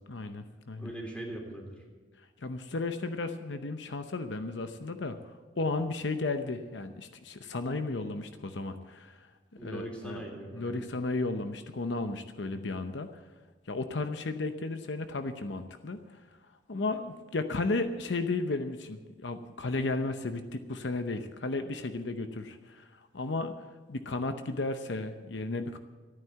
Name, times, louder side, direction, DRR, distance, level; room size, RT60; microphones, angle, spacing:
voice 1, 0.1-0.9 2.4-9.2 9.6-10.2 10.5-13.1 13.7-16.0 16.7-22.9 23.1-23.5 23.9-25.8, left 3 dB, 75° left, 8 dB, 0.8 m, -34 dB
voice 2, 0.8-1.8 9.6-10.8, right 1 dB, 5° left, -1 dB, 3.3 m, -40 dB
14.0 x 9.3 x 8.0 m, 1.3 s
head